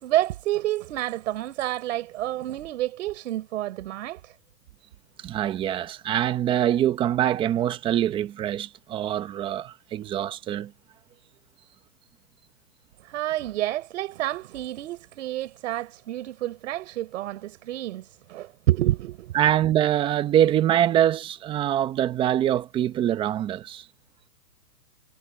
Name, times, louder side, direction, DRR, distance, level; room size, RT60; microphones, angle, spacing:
voice 1, 0.0-4.4 13.0-19.3, right 14 dB, 50° right, 4.0 m, -29 dB
voice 2, 5.2-10.7 19.3-23.9, right 11 dB, 10° right, 0.7 m, -24 dB
hypercardioid pair, 145°, 48 cm